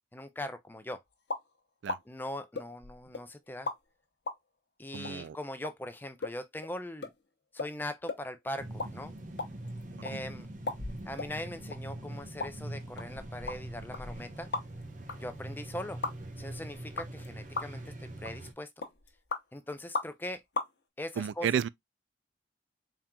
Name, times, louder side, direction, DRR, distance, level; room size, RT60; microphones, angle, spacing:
voice 1, 0.1-1.0 2.1-3.7 4.8-7.1 7.5-9.1 10.0-10.5 11.1-14.5 15.2-16.0 16.4-18.7 19.5-20.4 21.0-21.5, left 1 dB, 10° left, 0.5 m, -40 dB
sound 1, 1.3-1.5 1.9-2.0 2.5-3.2 3.7-3.8 4.3-4.4 5.0-5.1 5.6-5.7 6.2-6.4 6.6-6.7 7.0-7.1 7.6-7.7 8.1-8.2 8.6-8.9 9.2-10.1 10.7-11.3 11.7-11.8 12.4-12.5 13.0-14.8 15.1-15.2 16.0-16.1 17.0-17.3 17.6-17.9 18.2-18.5 18.8-19.4 19.9-20.3 20.5-20.7, left 3 dB, 70° left, 0.9 m, -36 dB
voice 2, 4.9-5.4 21.2-21.7, right 8 dB, 85° right, 0.3 m, -31 dB
sound 2, 8.6-18.5, right 1 dB, 45° right, 0.9 m, -43 dB
4.3 x 3.7 x 2.2 m
head